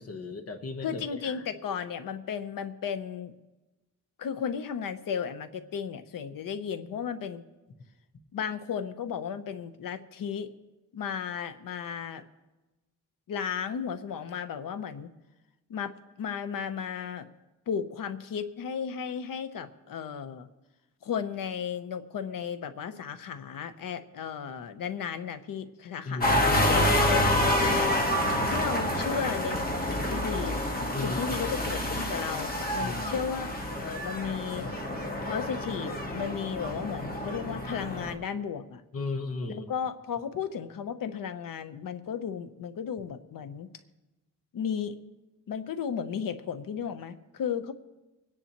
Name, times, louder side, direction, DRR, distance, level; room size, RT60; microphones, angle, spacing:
voice 1, 0.0-1.4 26.1-26.6 28.3-28.7 30.9-31.2 32.8-33.2 38.9-39.7, left 3 dB, 45° left, 7 dB, 1.2 m, -36 dB
voice 2, 0.8-3.3 4.2-7.4 8.3-10.5 10.9-12.2 13.3-15.1 15.7-17.3 17.7-20.5 21.0-30.6 31.0-33.5 33.8-34.7 35.2-38.8 39.5-43.7 44.5-45.0 45.5-47.7, left 7 dB, 80° left, 10 dB, 0.9 m, -34 dB
sound 1, 26.2-38.1, left 1 dB, 25° left, 1.5 m, -28 dB
25.5 x 10.0 x 3.0 m, 1.1 s
wide cardioid pair, 150°, 33 cm